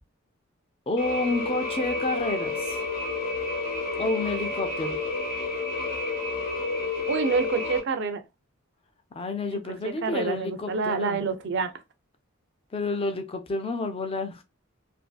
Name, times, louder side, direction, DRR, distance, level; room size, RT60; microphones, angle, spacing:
voice 1, 0.9-2.8 4.0-5.0 9.2-11.2 12.7-14.4, left 2 dB, 25° left, 0.4 m, -29 dB
sound 1, 1.0-7.8, left 3 dB, 45° left, 0.8 m, -30 dB
voice 2, 7.1-8.2 9.8-11.7, right 4 dB, 55° right, 0.5 m, -27 dB
2.6 x 2.5 x 2.3 m
head